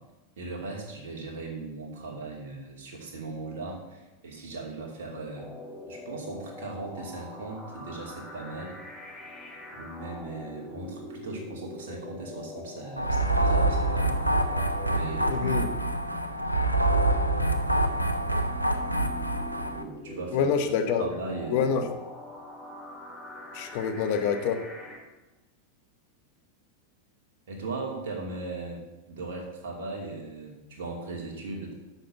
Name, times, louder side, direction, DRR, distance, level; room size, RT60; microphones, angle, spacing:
voice 1, 0.4-5.5 5.9-8.7 9.7-14.2 14.9-15.5 19.7-20.5 21.0-21.7 27.5-31.7, right 3 dB, 55° right, 1 dB, 2.6 m, -38 dB
sound 1, 5.4-25.0, left 2 dB, 15° left, 2.5 m, -44 dB
sound 2, 13.0-19.8, right 2 dB, 90° right, 0.7 m, -26 dB
voice 2, 15.3-15.7 20.3-21.0 21.5-21.8 23.5-24.6, left 7 dB, 45° left, 7 dB, 1.1 m, -26 dB
7.9 x 6.4 x 7.2 m, 1.1 s
figure-of-eight pair, 90°, 0 cm